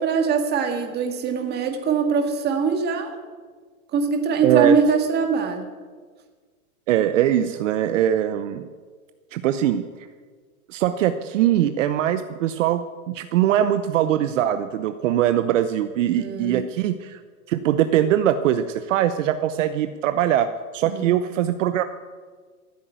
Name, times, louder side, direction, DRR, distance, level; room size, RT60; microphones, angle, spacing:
voice 1, 0.0-3.1 3.9-5.6 16.2-16.6 20.9-21.0, right 5 dB, 25° right, 4 dB, 1.8 m, -22 dB
voice 2, 4.4-4.8 6.9-8.7 9.3-9.8 10.7-17.2 17.5-21.8, right 11 dB, 60° right, 10 dB, 0.8 m, -21 dB
14.5 x 8.4 x 9.3 m, 1.5 s
hypercardioid pair, 145°, 43 cm